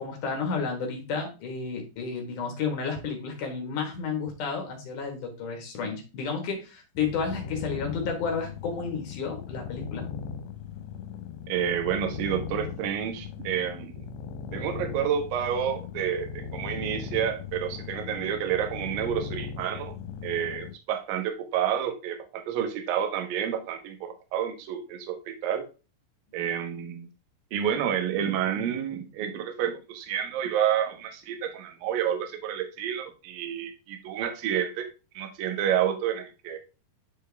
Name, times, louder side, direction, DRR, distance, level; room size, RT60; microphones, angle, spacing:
voice 1, 0.0-10.1, left 5 dB, 60° left, 3 dB, 2.5 m, -32 dB
sound 1, 7.0-20.8, left 7 dB, 80° left, 2.9 m, -38 dB
voice 2, 11.5-13.9 14.5-19.9 20.2-25.6 26.3-27.1 27.5-34.9 35.1-36.6, right 9 dB, 65° right, 5 dB, 2.5 m, -29 dB
10.5 x 4.5 x 3.4 m, 0.31 s
omnidirectional pair, 5.2 m